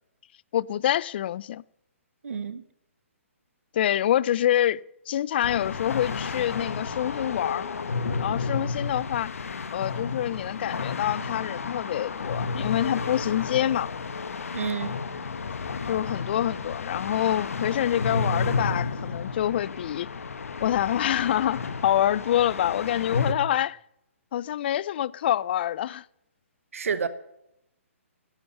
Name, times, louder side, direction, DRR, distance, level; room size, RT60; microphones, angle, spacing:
voice 1, 0.5-1.6 3.7-7.7 8.2-9.4 9.7-13.9 15.9-20.1 20.6-23.8 24.3-26.0, left 11 dB, 45° left, 0.4 m, -26 dB
voice 2, 2.2-2.6 14.5-15.0 26.7-27.1, right 6 dB, 75° right, 1.0 m, -29 dB
sound 1, 5.4-23.3, left 4 dB, 80° left, 1.2 m, -32 dB
12.5 x 11.5 x 5.5 m
hypercardioid pair, 145°, 8 cm